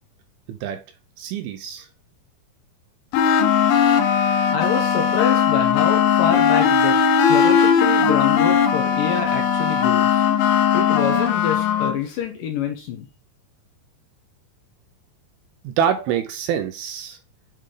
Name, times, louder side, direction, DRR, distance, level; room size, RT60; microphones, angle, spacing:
voice 1, 0.5-0.8 1.2-1.9 15.6-17.2, right 8 dB, 80° right, 2.3 m, -25 dB
sound 1, 3.1-12.0, left 7 dB, 90° left, 1.9 m, -18 dB
voice 2, 4.5-7.0 7.3-10.3 10.7-13.1, left 7 dB, 70° left, 2.3 m, -26 dB
7.6 x 3.8 x 3.3 m
omnidirectional pair, 4.7 m